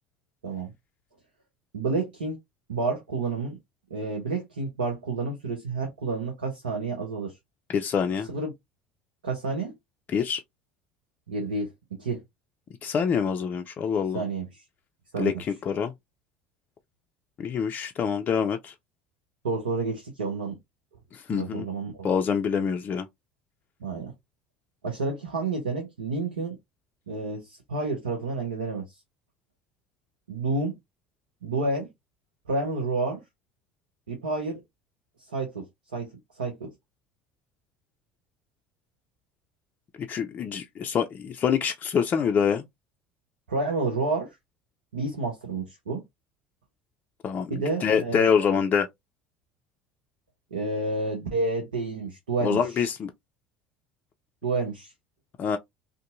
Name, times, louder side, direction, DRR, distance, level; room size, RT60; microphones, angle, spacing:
voice 1, 1.7-2.4 2.7-3.6 3.9-7.3 8.3-8.5 9.2-9.7 11.3-11.7 12.0-12.2 14.1-14.6 15.1-15.3 19.4-20.6 21.3-22.1 23.8-24.1 24.8-26.6 27.1-29.0 30.3-30.7 31.4-31.9 32.5-33.2 34.1-34.6 35.3-35.6 35.9-36.1 36.4-36.7 43.5-44.3 44.9-46.0 47.5-48.3 50.5-52.8 54.4-54.9, right 3 dB, 80° right, 0.7 m, -29 dB
voice 2, 7.7-8.3 10.1-10.4 12.8-14.2 15.2-15.9 17.4-18.7 21.1-21.7 22.0-23.1 40.1-42.6 47.2-48.9 52.4-53.1 55.4-55.6, left 7 dB, 35° left, 0.3 m, -26 dB
2.6 x 2.5 x 2.5 m
figure-of-eight pair, 65°, 5 cm